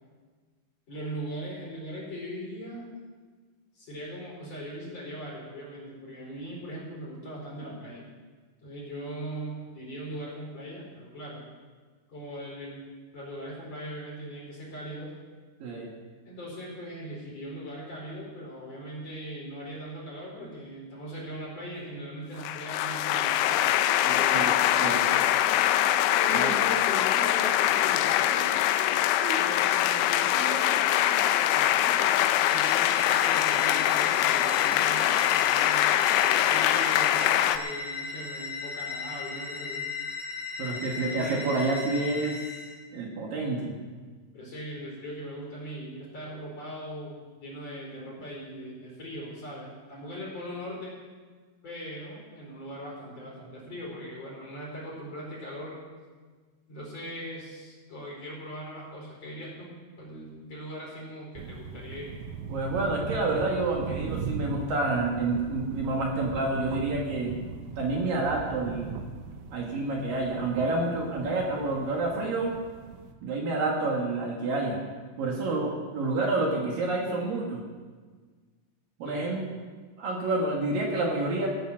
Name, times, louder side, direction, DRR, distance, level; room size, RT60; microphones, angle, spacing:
voice 1, 0.9-2.9 3.8-8.1 8.6-11.4 12.1-15.1 16.3-23.7 24.1-24.7 26.2-28.5 29.3-35.9 36.1-39.9 40.9-41.7 44.3-51.0 51.6-55.8 56.7-62.2 79.0-79.3, equal, 35° left, -4 dB, 5.1 m, -40 dB
sound 1, 22.4-37.6, left 12 dB, 85° left, 2.7 m, -23 dB
voice 2, 24.0-25.2 26.3-26.5 29.2-29.4 40.6-42.4 42.9-43.7 62.5-67.4 67.8-69.0 69.5-72.5 73.2-74.8 75.2-77.6 79.0-79.6 80.0-81.5, right 2 dB, 60° right, 0 dB, 2.6 m, -29 dB
sound 2, 32.2-42.7, left 5 dB, 65° left, 1.1 m, -36 dB
sound 3, 61.4-73.1, right 5 dB, 90° right, 3.7 m, -39 dB
17.0 x 9.7 x 6.2 m, 1.5 s
omnidirectional pair, 5.9 m